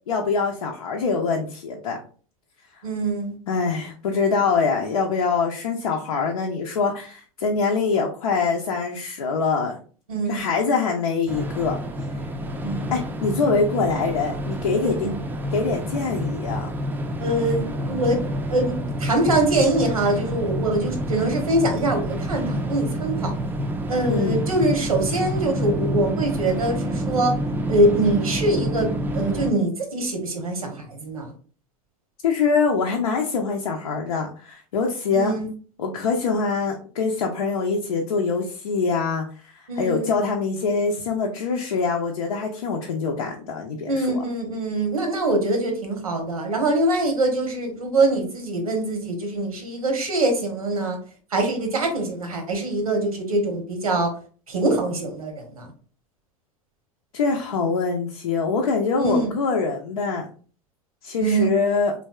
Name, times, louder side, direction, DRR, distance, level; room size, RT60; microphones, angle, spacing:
voice 1, 0.1-2.0 3.5-9.8 10.3-11.8 12.9-15.1 15.5-16.7 24.1-24.4 32.2-35.3 35.8-44.2 57.1-60.3 61.0-61.9, left 4 dB, 80° left, 0 dB, 0.5 m, -24 dB
voice 2, 2.8-3.3 10.1-10.4 12.6-12.9 14.8-15.2 17.2-23.3 23.9-27.4 27.7-31.3 35.1-35.5 39.7-40.1 43.9-51.0 51.3-54.1 54.5-55.7 59.0-59.3 61.2-61.5, right 2 dB, 90° right, 4 dB, 0.9 m, -23 dB
sound 1, 11.3-29.5, equal, 10° right, 0.3 m, -28 dB
3.2 x 2.6 x 2.3 m, 0.40 s
hypercardioid pair, 90°, 18 cm